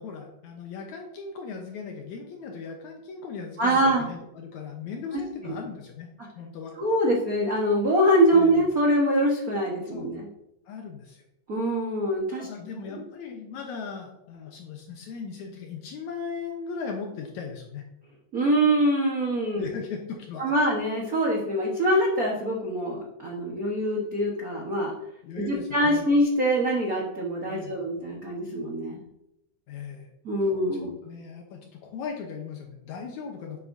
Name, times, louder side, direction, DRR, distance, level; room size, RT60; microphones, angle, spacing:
voice 1, 0.0-6.1 6.4-6.7 8.3-8.7 9.9-10.1 10.7-11.2 12.4-17.8 19.6-20.5 25.2-26.1 27.5-27.8 29.7-30.1 30.8-33.6, left 5 dB, 70° left, 2 dB, 2.2 m, -38 dB
voice 2, 3.6-4.1 5.4-5.5 6.8-10.3 11.5-12.5 12.9-13.0 18.3-19.7 20.4-24.9 25.4-29.0 30.2-30.9, right 1 dB, 75° right, -2 dB, 0.8 m, -24 dB
11.0 x 7.6 x 2.7 m, 0.84 s
omnidirectional pair, 3.6 m